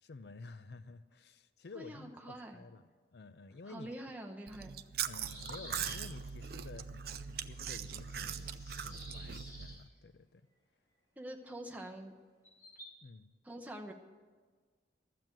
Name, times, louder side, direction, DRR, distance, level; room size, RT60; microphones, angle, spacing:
voice 1, 0.0-2.8 3.1-3.9 5.0-10.5 13.0-13.3, left 3 dB, 65° left, 13 dB, 0.5 m, -51 dB
voice 2, 1.7-2.6 3.7-4.8 11.2-12.1 13.4-13.9, right 1 dB, 10° right, 2 dB, 0.9 m, -45 dB
Chewing mastication, 4.5-9.8, right 8 dB, 55° right, 0.4 m, -41 dB
sound 1, 5.3-6.0 7.3-7.4 7.6-9.8 12.4-12.9, equal, 20° left, 4.9 m, -51 dB
12.5 x 7.6 x 8.9 m, 1.5 s
head